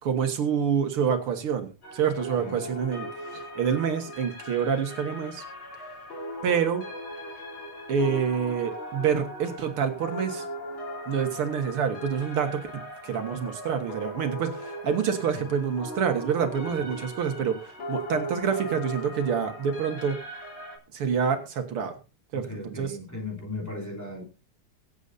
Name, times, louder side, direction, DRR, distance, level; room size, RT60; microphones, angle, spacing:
voice 1, 0.0-5.4 6.4-6.8 7.9-10.5 11.1-20.2 20.9-22.0 22.3-22.5 22.8-22.9, right 7 dB, 80° right, 2.4 m, -27 dB
sound 1, 1.8-20.8, equal, 65° left, 4.4 m, -39 dB
voice 2, 22.3-24.2, left 2 dB, 5° left, 3.1 m, -37 dB
23.0 x 8.2 x 2.7 m
omnidirectional pair, 2.4 m